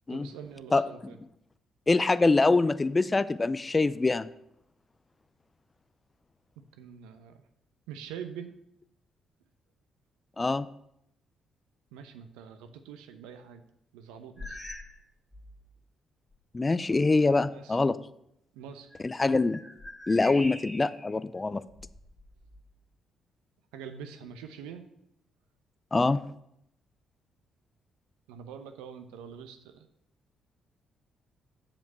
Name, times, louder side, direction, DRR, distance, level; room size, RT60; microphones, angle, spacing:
voice 1, 0.1-1.2 6.8-7.4 7.9-8.5 11.9-13.6 13.9-14.6 17.5-17.8 18.5-18.9 23.7-24.8 28.3-29.9, right 7 dB, 80° right, 8 dB, 0.8 m, -44 dB
voice 2, 1.9-4.3 10.4-10.7 16.5-18.0 19.0-19.6 20.1-21.6 25.9-26.3, left 3 dB, 30° left, 16 dB, 0.4 m, -24 dB
sound 1, 14.4-15.0 15.3-15.6 16.3-16.4 18.8-21.1 21.7-22.7, left 1 dB, 10° left, 2.2 m, -44 dB
7.3 x 5.4 x 6.8 m, 0.78 s
hypercardioid pair, 45°, 0 cm